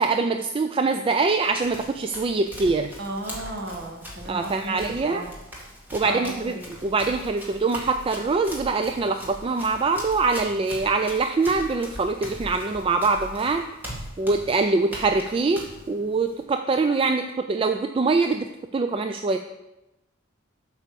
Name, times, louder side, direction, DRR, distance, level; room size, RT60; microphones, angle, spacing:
voice 1, 0.0-2.9 4.3-5.3 5.9-13.7 14.2-18.5 18.7-19.4, right 3 dB, 25° right, 7 dB, 0.3 m, -24 dB
Run, 1.2-16.4, equal, 10° right, 1.8 m, -41 dB
voice 2, 3.0-5.3 6.0-6.7, right 1 dB, 50° right, 2 dB, 1.4 m, -34 dB
8.2 x 4.8 x 6.7 m, 0.98 s
head